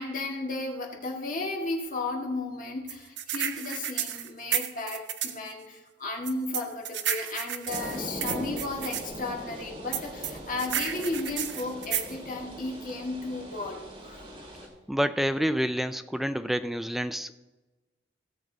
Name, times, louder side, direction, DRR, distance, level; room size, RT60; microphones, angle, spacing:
voice 1, 0.0-14.3, left 2 dB, 45° left, 0 dB, 1.8 m, -34 dB
sound 1, 2.9-5.4 6.2-9.0 9.9-12.1, right 10 dB, 75° right, 0.8 m, -31 dB
sound 2, 7.7-14.7, equal, 30° right, 2.4 m, -40 dB
voice 2, 14.9-17.4, equal, ahead, 10 dB, 0.3 m, -28 dB
16.5 x 7.4 x 3.9 m, 1.2 s
head